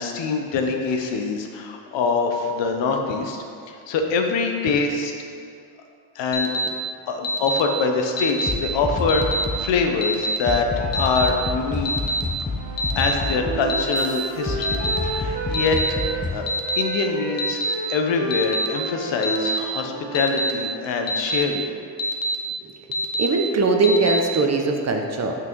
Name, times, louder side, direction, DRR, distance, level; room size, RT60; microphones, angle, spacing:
voice 1, 0.0-5.1 6.1-6.5 7.1-10.7 10.9-11.9 13.0-15.8 16.3-16.5 16.8-17.6 17.9-21.7, left 4 dB, 70° left, 3 dB, 1.0 m, -24 dB
Alarm, 6.3-6.7 7.2-7.6 8.2-8.5 9.1-9.4 10.0-10.4 10.9-11.3 11.9-12.2 12.8-13.1 13.7-14.1 14.6-15.0 15.5-15.9 16.5-16.8 17.4-17.7 18.3-18.7 19.2-19.6 20.1-20.5 21.1-21.4 22.0-22.4 22.9-23.3 23.8-24.2, equal, 50° left, 1.1 m, -25 dB
sound 1, 8.5-9.8 10.5-16.4, left 3 dB, 15° left, 0.9 m, -29 dB
Wind instrument woodwind instrument, 12.5-16.3 16.6-21.1, right 4 dB, 50° right, 1.2 m, -33 dB
voice 2, 22.6-25.4, right 3 dB, 35° right, 3 dB, 0.9 m, -21 dB
6.0 x 6.0 x 4.6 m, 2.3 s
supercardioid pair, 85°, 46 cm